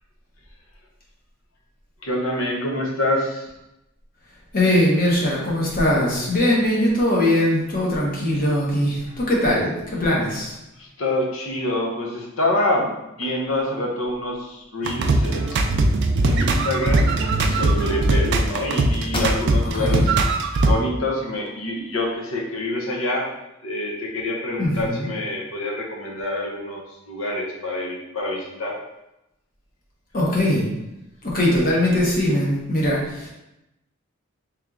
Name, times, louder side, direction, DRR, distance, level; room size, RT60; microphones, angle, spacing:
voice 1, 2.0-3.5 10.8-15.6 16.2-17.1 17.4-20.1 20.6-23.3 23.6-28.8, left 1 dB, 75° left, -1 dB, 0.9 m, -26 dB
voice 2, 4.5-10.5 19.8-20.1 24.6-25.1 30.1-30.7 31.2-33.3, left 1 dB, 45° left, -4 dB, 1.1 m, -21 dB
sound 1, 14.8-20.7, right 2 dB, 60° right, 0.4 m, -20 dB
sound 2, 19.1-19.9 20.4-20.5 21.0-21.9, left 1 dB, 25° left, 0.5 m, -32 dB
3.2 x 2.9 x 3.7 m, 0.90 s
head